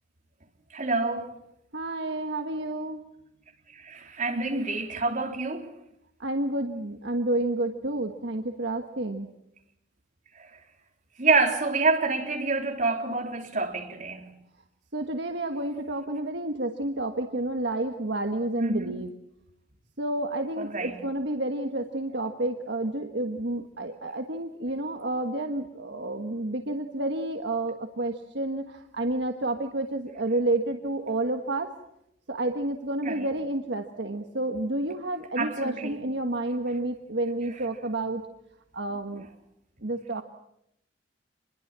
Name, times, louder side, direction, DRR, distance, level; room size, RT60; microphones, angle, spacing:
voice 1, 0.7-1.3 3.7-5.7 10.4-10.5 11.2-14.3 18.6-19.0 20.6-21.0 33.0-33.3 35.4-36.0, right 3 dB, 40° right, 3.7 m, -27 dB
voice 2, 1.7-3.0 6.2-9.3 14.9-19.1 20.0-31.7 32.3-38.2 38.7-39.3 39.8-40.2, right 2 dB, 60° right, 1.5 m, -30 dB
27.0 x 21.5 x 7.5 m
head